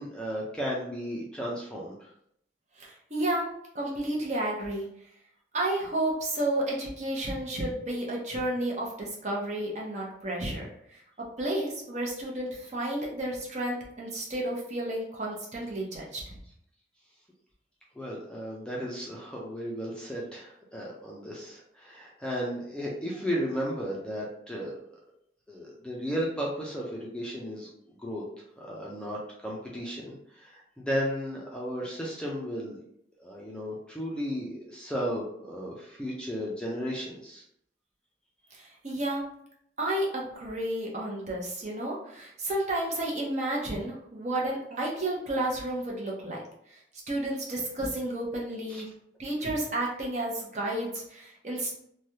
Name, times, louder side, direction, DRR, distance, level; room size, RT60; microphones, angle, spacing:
voice 1, 0.0-1.9 17.9-25.0 25.5-28.2 28.6-32.8 33.2-37.4 48.7-48.8, equal, 5° left, -4 dB, 0.5 m, -34 dB
voice 2, 2.8-3.5 3.7-4.9 5.5-11.0 11.4-16.3 38.5-39.2 39.8-46.4 46.7-46.8 47.1-48.9 49.2-51.7, right 1 dB, 40° right, -3 dB, 0.8 m, -31 dB
3.2 x 2.2 x 2.7 m, 0.70 s
head